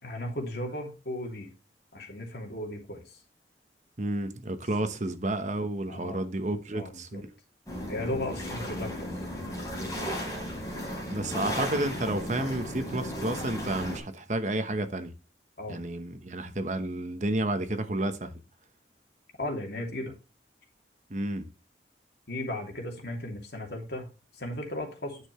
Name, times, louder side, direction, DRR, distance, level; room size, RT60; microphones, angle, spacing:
voice 1, 0.0-1.5 1.9-3.2 5.9-6.2 6.7-7.2 7.9-9.1 9.7-9.9 15.6-15.8 19.4-20.1 22.3-25.2, left 1 dB, 65° left, 2.7 m, -36 dB
voice 2, 4.0-7.3 11.1-15.1 15.7-18.4 21.1-21.5, right 1 dB, 40° right, 1.0 m, -31 dB
sound 1, 7.7-14.0, equal, 20° left, 4.3 m, -35 dB
9.8 x 6.7 x 3.2 m
head